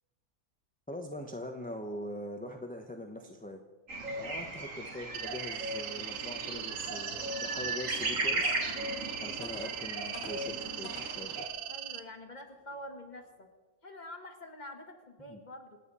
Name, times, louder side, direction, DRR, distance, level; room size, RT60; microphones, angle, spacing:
voice 1, 0.9-3.6 4.2-8.6 9.2-11.4 15.3-15.4, left 1 dB, 5° left, 3 dB, 1.0 m, -42 dB
sound 1, 3.9-11.5, right 2 dB, 65° right, 2.6 m, -36 dB
sound 2, 5.1-12.0, right 11 dB, 90° right, 1.3 m, -40 dB
sound 3, 8.9-9.0 9.4-11.3 11.9-12.0 12.6-12.8, left 2 dB, 45° left, 2.4 m, -47 dB
voice 2, 11.7-13.5 13.8-15.8, left 1 dB, 30° left, 4 dB, 1.9 m, -47 dB
26.5 x 9.5 x 5.6 m, 1.2 s
omnidirectional pair, 1.5 m